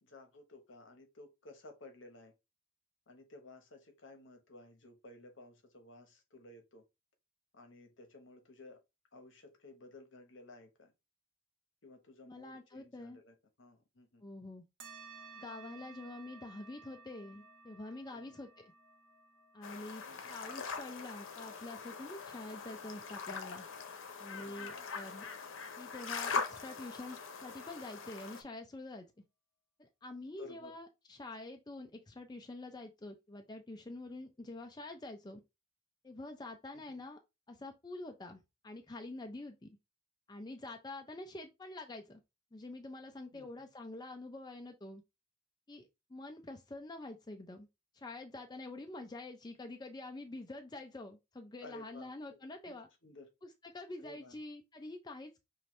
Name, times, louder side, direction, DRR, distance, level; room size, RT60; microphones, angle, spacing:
voice 1, 0.0-2.3 3.1-6.8 7.5-8.8 9.1-10.9 11.8-14.2 18.1-18.4 20.1-20.3 24.4-24.9 30.4-30.8 36.7-37.0 43.3-43.7 51.6-53.3 54.0-54.4, left 2 dB, 70° left, 1.0 m, -55 dB
voice 2, 12.3-13.2 14.2-14.6 15.3-18.7 19.5-20.0 20.3-23.7 24.2-25.3 25.8-29.1 29.8-35.4 36.0-37.2 37.5-39.8 40.3-42.2 42.5-45.0 45.7-47.7 47.9-52.9 53.4-55.5, left 2 dB, 20° left, 0.4 m, -47 dB
sound 1, 14.8-23.7, right 4 dB, 70° right, 0.9 m, -57 dB
sound 2, 19.6-28.4, left 5 dB, 90° left, 0.7 m, -42 dB
5.6 x 2.6 x 3.1 m
head